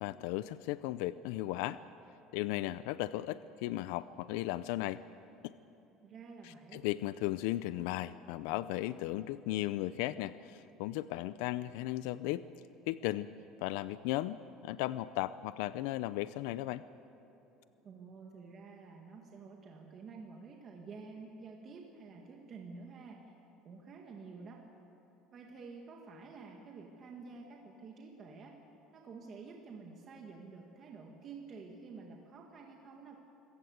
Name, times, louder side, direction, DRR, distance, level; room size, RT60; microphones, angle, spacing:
voice 1, 0.0-1.8 2.3-5.0 5.4-5.5 6.4-12.4 12.9-13.3 13.6-14.4 14.6-16.8, left 15 dB, 80° left, 15 dB, 0.5 m, -36 dB
voice 2, 6.0-6.8 17.8-23.3 23.6-24.7 25.3-28.6 28.9-33.1, right 4 dB, 30° right, 1 dB, 1.8 m, -50 dB
26.0 x 16.5 x 8.0 m, 3.0 s
cardioid pair, 160°, 0 cm